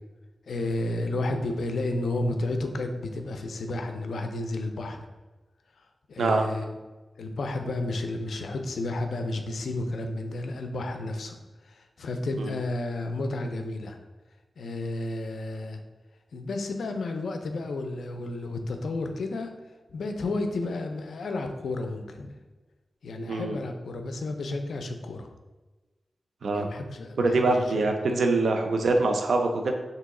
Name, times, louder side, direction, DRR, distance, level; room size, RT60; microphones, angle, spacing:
voice 1, 0.5-5.1 6.1-6.7 7.2-11.4 11.6-14.0 14.6-15.8 16.3-19.5 19.9-22.4 23.0-25.3 26.5-27.8, left 2 dB, 85° left, 6 dB, 0.4 m, -32 dB
voice 2, 27.2-29.7, right 3 dB, 80° right, 4 dB, 0.4 m, -24 dB
3.0 x 2.7 x 3.6 m, 1.2 s
wide cardioid pair, 80°, 0 cm